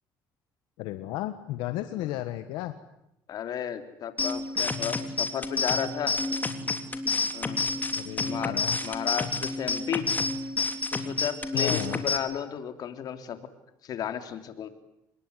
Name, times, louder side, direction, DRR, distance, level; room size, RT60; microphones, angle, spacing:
voice 1, 0.8-2.8 7.9-8.8 11.5-12.0, left 14 dB, 85° left, 10 dB, 1.4 m, -33 dB
voice 2, 3.3-6.1 7.3-7.6 8.2-10.1 10.9-13.4 13.8-14.7, left 9 dB, 60° left, 9 dB, 3.2 m, -33 dB
sound 1, 4.2-12.2, left 3 dB, 20° left, 3.2 m, -29 dB
26.5 x 21.5 x 9.8 m, 0.81 s
cardioid pair, 95°, 8 cm